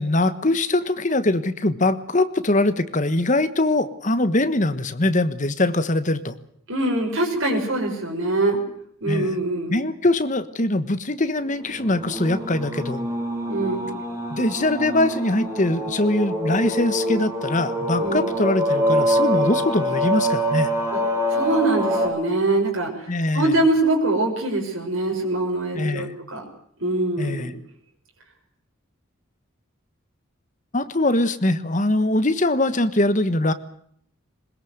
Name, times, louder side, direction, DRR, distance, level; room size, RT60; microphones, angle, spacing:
voice 1, 0.0-6.3 9.1-9.3 9.7-13.0 14.3-20.7 23.1-23.6 25.7-26.1 27.2-27.5 30.7-33.5, left 2 dB, 35° left, 11 dB, 1.3 m, -22 dB
voice 2, 6.7-8.6 9.0-9.8 13.5-14.0 18.0-18.3 20.9-21.0 21.3-22.9 23.3-26.5 26.8-27.5, right 2 dB, 70° right, -1 dB, 6.3 m, -23 dB
sound 1, 11.7-22.1, equal, 15° right, 6.7 m, -25 dB
21.5 x 21.0 x 8.0 m, 0.65 s
head